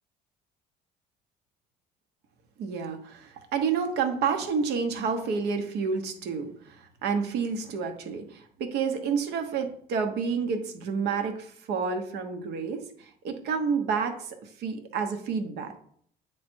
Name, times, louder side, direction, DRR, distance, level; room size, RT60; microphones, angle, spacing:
voice 1, 2.6-14.3 14.6-15.8, right 5 dB, 80° right, 6 dB, 1.0 m, -29 dB
8.5 x 3.3 x 4.4 m, 0.62 s
cardioid pair, 110°, 17 cm